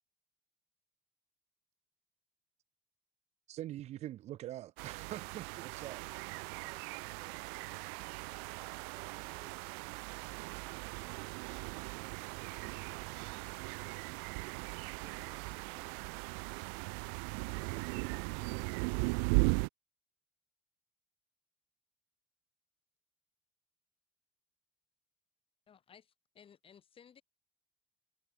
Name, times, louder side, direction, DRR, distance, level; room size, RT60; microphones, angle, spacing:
voice 1, 3.5-6.1, right 14 dB, 55° right, 1.0 m, -44 dB
sound 1, 4.8-19.7, right 40 dB or more, 70° right, 0.7 m, -38 dB
voice 2, 6.6-8.1 8.7-10.4 14.8-16.0 17.5-19.0, right 6 dB, 35° right, 6.0 m, -62 dB
voice 3, 25.7-27.2, left 8 dB, 45° left, 5.2 m, -59 dB
hypercardioid pair, 55°, 13 cm